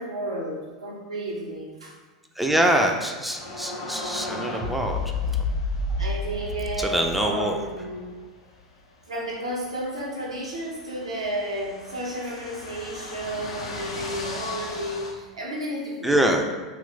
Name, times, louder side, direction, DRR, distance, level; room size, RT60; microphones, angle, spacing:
voice 1, 0.0-1.9 6.0-8.1 9.1-16.2, right 1 dB, 85° right, -4 dB, 0.5 m, -32 dB
voice 2, 2.4-5.0 5.4-5.5 6.8-7.6 16.0-16.4, right 1 dB, 5° right, 2 dB, 0.3 m, -24 dB
sound 1, 3.2-8.1, left 3 dB, 35° left, 0.7 m, -30 dB
sound 2, 3.3-15.1, left 2 dB, 75° left, 0.5 m, -42 dB
2.9 x 2.5 x 3.1 m, 1.3 s
figure-of-eight pair, 90°, 3 cm